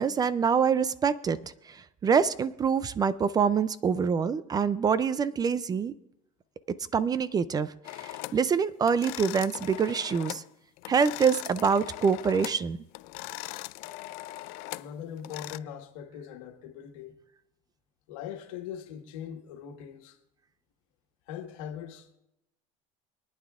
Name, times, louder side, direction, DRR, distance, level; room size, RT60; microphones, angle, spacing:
voice 1, 0.0-1.8 2.0-5.9 6.9-7.7 8.0-10.4 10.9-12.8, right 6 dB, 25° right, 0.4 m, -25 dB
sound 1, 7.8-8.4 8.9-10.5 10.8-12.7 12.9-15.6, left 19 dB, 65° left, 0.4 m, -40 dB
voice 2, 13.6-14.2 14.7-17.2 18.1-20.2 21.3-22.1, left 9 dB, 85° left, 1.5 m, -41 dB
26.5 x 9.4 x 2.5 m
supercardioid pair, 120°, 17 cm